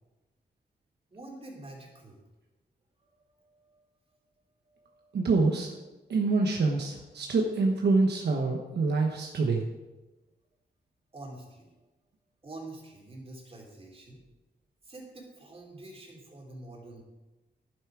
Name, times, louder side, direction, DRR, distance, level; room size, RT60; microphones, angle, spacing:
voice 1, 1.1-2.2 3.0-3.9 4.6-5.3 11.1-11.7 12.4-14.2 14.8-17.0, right 2 dB, 35° right, -1 dB, 3.2 m, -47 dB
voice 2, 5.1-5.7 6.1-9.7, right 3 dB, 75° right, 2 dB, 1.2 m, -26 dB
11.0 x 9.5 x 4.9 m, 1.1 s
wide cardioid pair, 110°, 17 cm